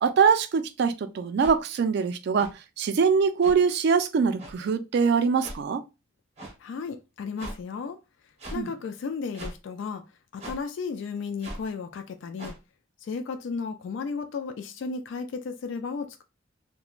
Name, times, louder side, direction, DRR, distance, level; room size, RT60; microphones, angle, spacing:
voice 1, 0.0-2.5 2.8-5.8 8.6-8.7, right 6 dB, 60° right, 0.3 m, -23 dB
sound 1, 1.4-1.5 2.4-2.5 3.4-3.6 4.4-4.5 5.4-5.6 6.4-6.5 7.4-7.6 8.4-8.6 9.3-9.6 10.4-10.6 11.4-11.6 12.4-12.6, right 1 dB, 35° right, 0.7 m, -39 dB
voice 2, 6.6-8.0 8.5-10.0 10.3-12.5 13.0-16.2, left 5 dB, 70° left, 0.3 m, -34 dB
3.0 x 2.1 x 2.3 m
head